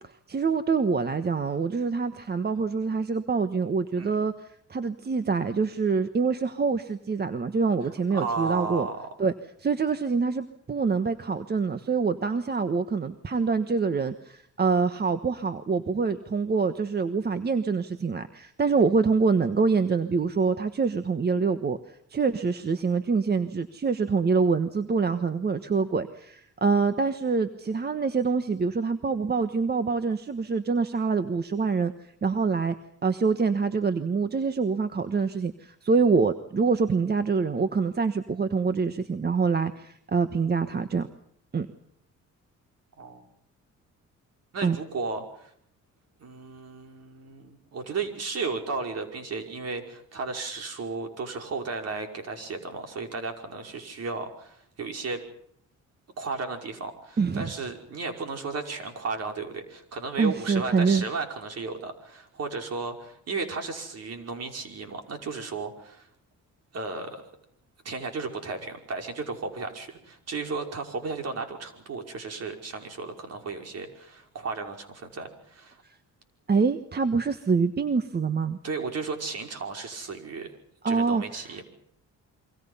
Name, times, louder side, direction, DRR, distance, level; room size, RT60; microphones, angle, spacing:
voice 1, 0.3-8.9 9.2-9.3 9.6-21.8 22.1-31.9 32.2-32.7 33.0-41.1 41.5-41.7 44.6-44.8 57.2-57.5 60.2-61.0 76.5-78.6 80.8-81.6, right 4 dB, 35° right, 10 dB, 1.3 m, -25 dB
voice 2, 8.1-9.1 43.0-43.3 44.5-45.5 46.2-55.2 56.2-66.1 66.7-67.2 67.8-75.8 78.6-80.5 80.9-81.6, right 4 dB, 55° right, 4 dB, 5.4 m, -34 dB
28.0 x 24.5 x 5.6 m, 0.69 s
cardioid pair, 90°, 30 cm